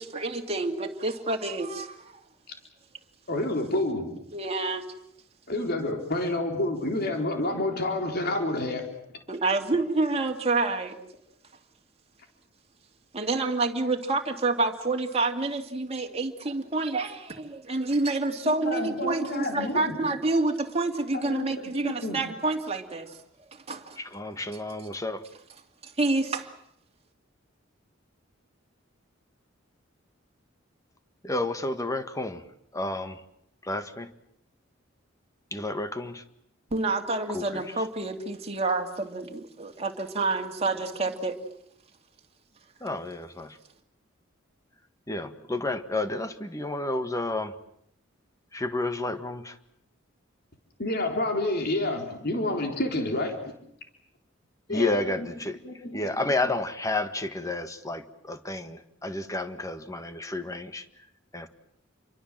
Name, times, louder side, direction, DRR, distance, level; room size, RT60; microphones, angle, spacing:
voice 1, 0.0-2.2 4.3-4.8 9.3-11.0 13.1-23.2 23.5-24.0 25.8-26.5 36.7-41.4, right 3 dB, 30° right, 3 dB, 2.5 m, -28 dB
voice 2, 3.3-4.1 5.5-8.8 18.4-20.0 21.1-22.2 50.8-53.5 54.7-55.3 55.6-56.2, left 1 dB, 55° left, 3 dB, 3.9 m, -29 dB
voice 3, 24.0-25.2 31.2-32.4 32.7-33.2 33.7-34.1 35.5-36.2 37.3-37.6 42.8-43.5 45.1-47.5 48.5-49.5 54.7-55.6 55.9-60.8 61.3-61.5, left 2 dB, 15° left, 9 dB, 1.6 m, -31 dB
29.0 x 24.0 x 7.5 m, 0.73 s
head